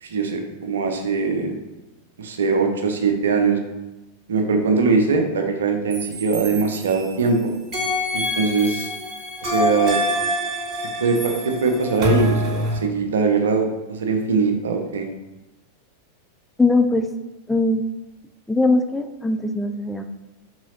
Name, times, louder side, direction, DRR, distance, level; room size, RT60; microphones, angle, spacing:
voice 1, 0.0-1.5 2.2-3.6 4.3-7.5 8.1-8.9 9.4-10.0 11.0-15.1, right 4 dB, 65° right, 4 dB, 1.0 m, -21 dB
sound 1, 5.9-7.3 7.7-12.8, left 1 dB, 30° right, 2.3 m, -25 dB
voice 2, 16.6-17.1 17.5-17.9 18.5-20.1, left 2 dB, 5° left, 6 dB, 0.5 m, -20 dB
6.1 x 4.8 x 4.2 m, 1.0 s
figure-of-eight pair, 90°, 0 cm